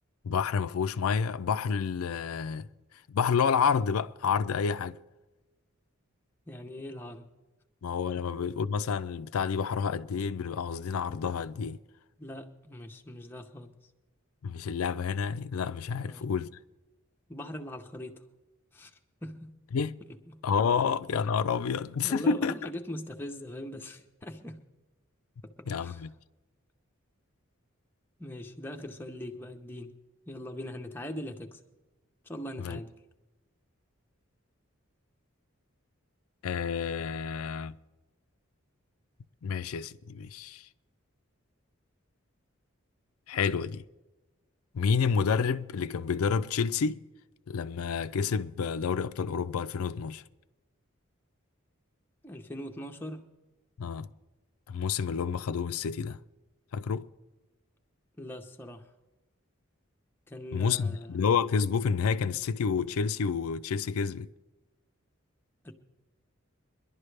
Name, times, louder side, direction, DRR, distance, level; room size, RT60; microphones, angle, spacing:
voice 1, 0.2-2.7 3.1-5.0 7.8-11.8 14.4-16.5 19.7-20.0 20.4-22.6 25.7-26.1 32.6-32.8 36.4-37.7 39.4-40.7 43.3-43.8 44.7-47.0 47.5-50.2 53.8-54.1 54.7-56.2 56.7-57.1 60.5-64.3, left 6 dB, 85° left, 0.4 m, -29 dB
voice 2, 6.5-7.3 8.2-8.3 12.2-13.7 16.0-16.3 17.3-18.3 18.7-18.9 19.2-19.6 20.3-20.4 22.0-24.6 25.4-26.0 28.2-30.0 30.3-31.6 32.2-33.0 52.2-53.2 58.2-58.9 60.3-61.2 65.6-65.7, left 1 dB, 10° left, 0.7 m, -41 dB
22.5 x 11.0 x 3.3 m
head